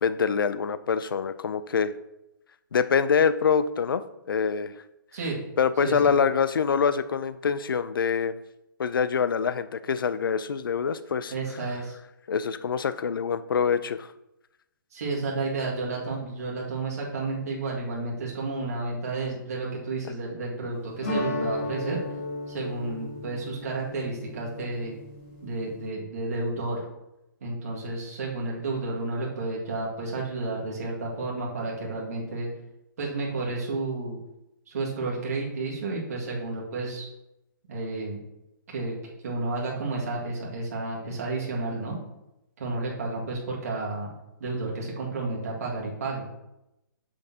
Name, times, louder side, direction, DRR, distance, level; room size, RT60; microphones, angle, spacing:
voice 1, 0.0-1.9 2.7-4.7 5.6-8.4 8.8-11.3 12.3-14.1, left 6 dB, 90° left, 14 dB, 0.5 m, -25 dB
voice 2, 5.8-6.1 11.3-12.0 14.9-22.0 22.5-25.0 25.4-26.8 27.4-32.5 33.0-34.2 34.7-37.1 37.7-38.2 38.7-38.9 39.2-42.0 42.6-44.1 44.4-46.2, right 3 dB, 45° right, -3 dB, 2.0 m, -31 dB
sound 1, 21.0-25.9, left 1 dB, 35° left, 1.6 m, -34 dB
8.6 x 6.3 x 2.8 m, 0.90 s
hypercardioid pair, 175°, 11 cm